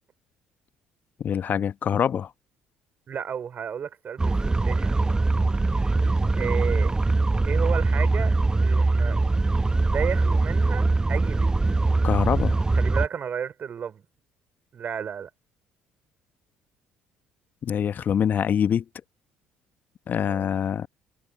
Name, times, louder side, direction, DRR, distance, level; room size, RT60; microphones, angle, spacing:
voice 1, 1.2-2.3 12.0-12.6 17.6-18.8 20.1-20.9, left 8 dB, 45° left, 1.0 m, -24 dB
voice 2, 3.1-5.5 6.3-6.9 7.5-8.3 8.6-9.2 9.9-11.5 12.7-14.0 14.7-15.3 20.3-20.5, right 7 dB, 45° right, 4.5 m, -33 dB
sound 1, 4.2-13.1, right 3 dB, 15° right, 1.0 m, -22 dB
figure-of-eight pair, 55°, 4 cm